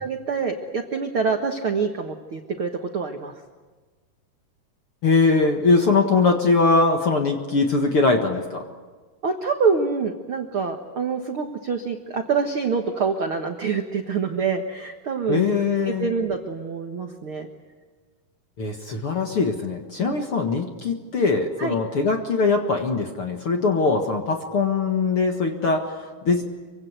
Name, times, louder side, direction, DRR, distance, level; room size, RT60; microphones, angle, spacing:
voice 1, 0.0-3.4 9.2-15.5 15.8-17.5 20.0-20.1 21.6-21.7, right 5 dB, 65° right, 4 dB, 1.3 m, -26 dB
voice 2, 5.0-8.6 15.3-16.1 18.6-26.4, left 4 dB, 50° left, 3 dB, 1.8 m, -21 dB
26.0 x 24.5 x 8.2 m, 1.4 s
omnidirectional pair, 4.6 m